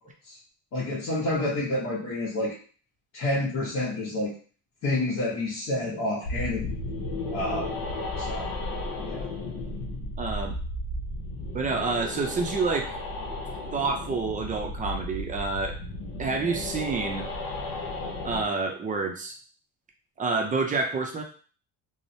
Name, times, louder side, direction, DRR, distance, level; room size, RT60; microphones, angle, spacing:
voice 1, 0.7-2.5 3.1-4.3 4.8-6.8 7.3-7.8 8.2-8.5 9.0-9.3, left 2 dB, 50° left, -7 dB, 0.9 m, -29 dB
sound 1, 6.2-18.5, left 2 dB, 80° left, 0.8 m, -34 dB
voice 2, 10.2-10.6 11.5-13.0 13.7-15.8 16.2-17.3 18.2-19.4 20.2-21.2, right 4 dB, 25° right, 3 dB, 0.4 m, -28 dB
3.0 x 2.0 x 2.7 m, 0.40 s
cardioid pair, 135°, 35 cm